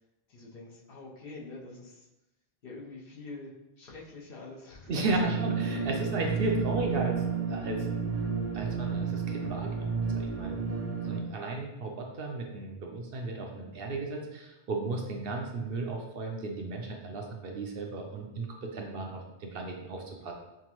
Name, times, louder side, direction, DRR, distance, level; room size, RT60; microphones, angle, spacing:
voice 1, 0.3-2.1 2.6-6.1, left 3 dB, 60° left, -4 dB, 1.0 m, -46 dB
voice 2, 4.9-7.9 8.5-20.3, right 2 dB, 65° right, 1 dB, 0.7 m, -35 dB
sound 1, 5.0-11.2, right 5 dB, 20° right, 0.4 m, -31 dB
5.7 x 2.2 x 2.9 m, 0.97 s
omnidirectional pair, 1.1 m